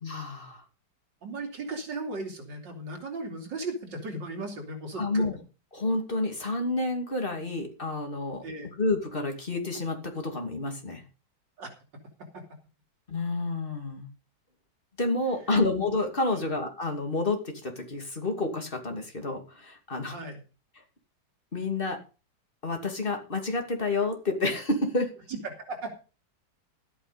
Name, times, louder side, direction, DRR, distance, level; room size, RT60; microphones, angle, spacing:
voice 1, 0.0-0.6 5.0-5.4 5.7-8.4 8.8-11.0 13.1-14.1 15.0-20.1 21.5-22.0 22.6-25.2, left 2 dB, 30° left, 3 dB, 2.8 m, -29 dB
voice 2, 1.2-5.2 8.4-8.7 11.6-11.7 12.3-12.4 16.3-16.5 20.1-20.4 25.3-25.9, right 2 dB, 75° right, 3 dB, 3.6 m, -36 dB
13.5 x 9.0 x 5.1 m, 0.33 s
omnidirectional pair, 2.0 m